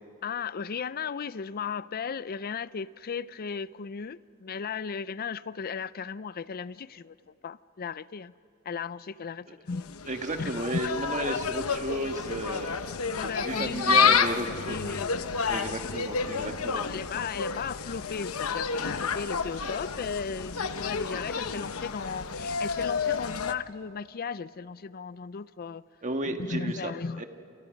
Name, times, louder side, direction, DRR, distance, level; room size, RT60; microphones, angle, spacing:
voice 1, 0.2-8.3 8.6-10.0 10.3-11.4 13.2-14.2 14.5-15.3 16.7-25.8 26.4-27.2, left 5 dB, 45° left, 0.5 m, -36 dB
Insect, 9.7-23.5, left 5 dB, 85° left, 0.9 m, -30 dB
voice 2, 10.1-12.8 13.4-15.0 15.5-16.9 26.0-26.9 27.2-27.3, right 2 dB, 35° right, 1.6 m, -33 dB
29.0 x 28.5 x 5.2 m
head